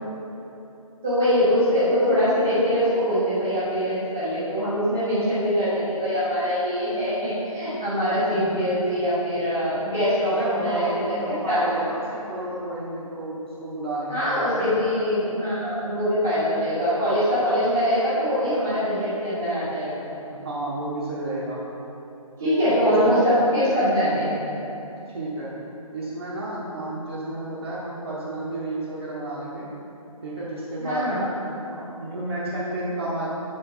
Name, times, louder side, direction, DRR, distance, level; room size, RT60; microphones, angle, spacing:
voice 1, 1.0-11.6 14.1-19.9 22.4-24.3 30.8-31.3, equal, 5° right, -11 dB, 0.4 m, -23 dB
voice 2, 10.3-14.7 20.3-21.6 22.4-23.1 25.1-25.5 25.9-29.7 30.2-31.3 31.7-33.3, right 1 dB, 45° right, -7 dB, 1.0 m, -31 dB
7.6 x 4.4 x 4.4 m, 3.0 s
figure-of-eight pair, 150°, 18 cm